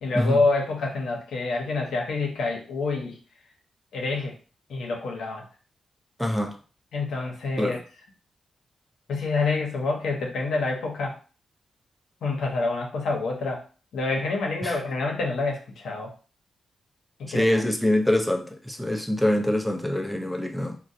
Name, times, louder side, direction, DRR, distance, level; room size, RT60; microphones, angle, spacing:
voice 1, 0.0-3.2 3.9-4.4 4.7-5.4 6.9-7.8 9.1-11.2 12.2-13.6 13.9-16.1 17.2-17.6, left 3 dB, 85° left, 0.8 m, -27 dB
voice 2, 6.2-6.6 7.6-7.8 14.6-14.8 17.3-20.8, left 1 dB, ahead, 0.6 m, -24 dB
3.7 x 2.1 x 2.7 m
cardioid pair, 70°, 0 cm